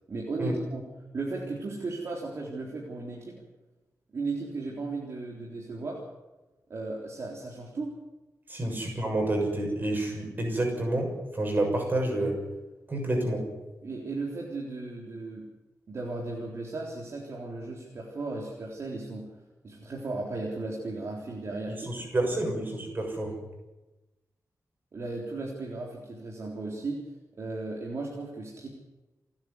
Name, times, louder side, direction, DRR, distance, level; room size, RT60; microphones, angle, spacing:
voice 1, 0.1-0.8 1.1-3.4 4.1-6.0 6.7-8.0 8.5-8.7 13.8-15.4 15.9-19.3 19.6-22.3 24.9-27.0 27.4-28.7, right 3 dB, 50° right, -2 dB, 3.9 m, -36 dB
voice 2, 8.5-12.4 12.9-13.5 21.8-23.4, right 1 dB, 30° right, 2 dB, 6.8 m, -29 dB
29.0 x 10.0 x 9.8 m, 1.1 s
wide cardioid pair, 165°, 6 cm